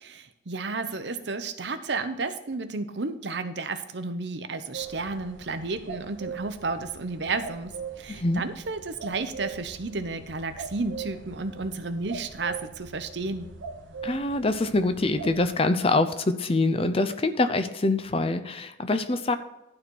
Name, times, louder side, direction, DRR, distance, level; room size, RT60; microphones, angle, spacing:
voice 1, 0.0-13.5, right 3 dB, 65° right, 9 dB, 0.8 m, -32 dB
sound 1, 4.7-15.5, right 5 dB, 90° right, 1.3 m, -41 dB
voice 2, 8.1-8.4 14.0-19.4, left 2 dB, 30° left, 9 dB, 0.6 m, -25 dB
12.0 x 4.2 x 6.2 m, 0.90 s
head